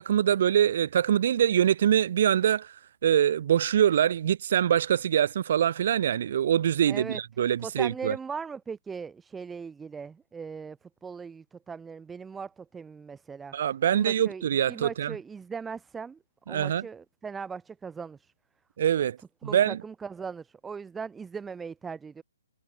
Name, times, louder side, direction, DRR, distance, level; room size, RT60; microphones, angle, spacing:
voice 1, 0.0-2.7 3.0-8.1 13.5-15.2 16.5-16.9 18.8-19.2 19.4-19.8, right 9 dB, 45° right, 0.7 m, -24 dB
voice 2, 6.9-7.2 7.6-13.5 13.9-16.2 16.5-18.3 19.4-22.2, right 5 dB, 10° right, 3.0 m, -39 dB
figure-of-eight pair, 130°, 0 cm